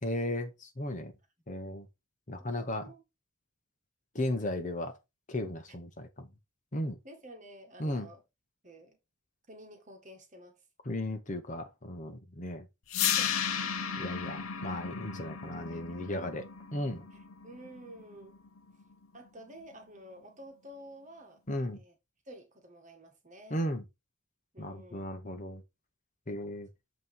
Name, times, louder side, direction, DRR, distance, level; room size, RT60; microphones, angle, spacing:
voice 1, 0.0-1.1 1.5-1.9 2.3-2.9 4.1-5.0 5.3-6.3 6.7-7.0 7.8-8.1 10.9-12.7 14.0-16.5 16.7-17.0 21.5-21.8 23.5-23.8 24.6-25.6 26.3-26.7, left 1 dB, 35° left, 0.9 m, -35 dB
voice 2, 2.4-3.0 5.7-5.8 7.0-8.2 8.6-9.0 9.5-10.6 13.0-13.8 17.1-18.4 19.1-21.4 21.7-21.9 22.2-23.7 24.5-25.1, right 1 dB, 35° right, 1.7 m, -51 dB
sound 1, 12.9-18.9, left 8 dB, 75° left, 1.0 m, -35 dB
8.3 x 3.1 x 5.4 m
head